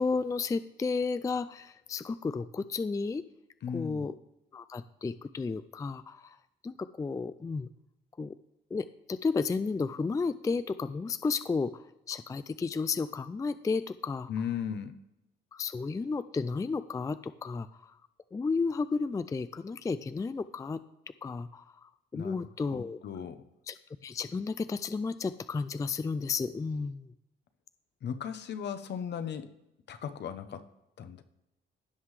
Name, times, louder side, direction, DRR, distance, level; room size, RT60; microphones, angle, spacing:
voice 1, 0.0-3.2 3.7-4.1 4.5-6.4 6.6-7.7 8.2-8.3 8.7-11.7 12.1-14.3 15.5-17.9 18.3-20.8 21.2-23.0 23.7-23.8 24.0-27.1, left 4 dB, 15° left, 13 dB, 0.3 m, -32 dB
voice 2, 3.6-4.1 14.3-14.9 22.1-22.4 22.7-23.4 28.0-29.5 29.9-30.7 31.0-31.2, left 8 dB, 60° left, 10 dB, 0.9 m, -36 dB
16.0 x 5.6 x 3.2 m, 0.91 s
cardioid pair, 90°, 20 cm